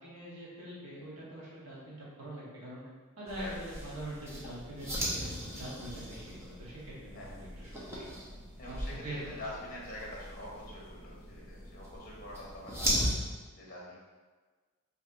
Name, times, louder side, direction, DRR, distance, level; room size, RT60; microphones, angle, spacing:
voice 1, 0.0-2.8 3.2-8.2 8.7-9.4, right 1 dB, 80° right, -6 dB, 1.4 m, -44 dB
sound 1, 3.3-13.1, equal, 10° right, 0.9 m, -38 dB
voice 2, 7.1-7.4 8.6-13.1 13.5-14.0, left 1 dB, 40° left, -4 dB, 1.3 m, -45 dB
5.3 x 3.4 x 2.7 m, 1.4 s
head